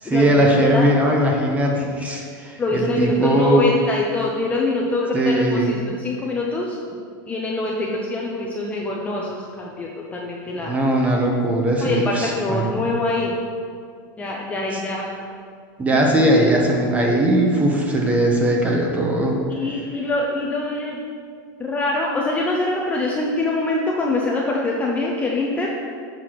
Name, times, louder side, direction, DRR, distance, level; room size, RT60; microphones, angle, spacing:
voice 1, 0.0-3.7 5.1-5.8 10.6-12.9 14.7-14.8 15.8-19.4, right 1 dB, 15° right, 0 dB, 1.0 m, -19 dB
voice 2, 2.6-5.6 5.9-6.8 7.3-10.8 11.8-13.3 14.2-15.1 19.5-21.0 21.6-25.7, left 2 dB, 10° left, -3 dB, 0.6 m, -24 dB
6.8 x 4.7 x 5.9 m, 2.2 s
supercardioid pair, 150°, 11 cm